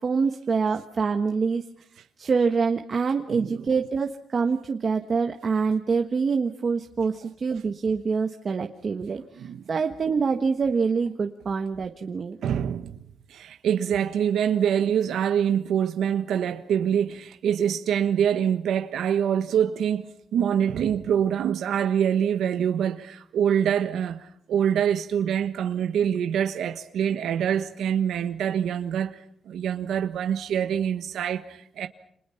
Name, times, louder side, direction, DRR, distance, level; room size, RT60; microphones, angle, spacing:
voice 1, 0.0-1.6 2.2-9.2 9.7-12.4, right 5 dB, 35° right, 1.4 m, -25 dB
voice 2, 3.3-3.7 9.4-9.6 12.4-13.0 13.3-31.9, right 9 dB, 85° right, 1.4 m, -25 dB
29.5 x 27.5 x 5.8 m
wide cardioid pair, 160°, 0 cm